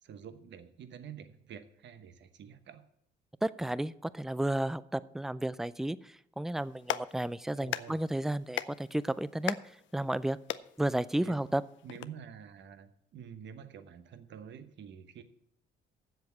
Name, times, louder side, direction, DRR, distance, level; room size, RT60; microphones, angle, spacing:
voice 1, 0.0-2.8 7.6-8.0 11.2-11.5 11.8-15.2, right 8 dB, 65° right, 10 dB, 1.0 m, -48 dB
voice 2, 3.4-9.6 9.9-10.4 10.8-11.6, right 1 dB, ahead, 17 dB, 0.4 m, -32 dB
Clapping, 6.6-12.1, left 12 dB, 75° left, 0.5 m, -41 dB
7.9 x 7.1 x 8.3 m, 0.73 s
cardioid pair, 90°, 20 cm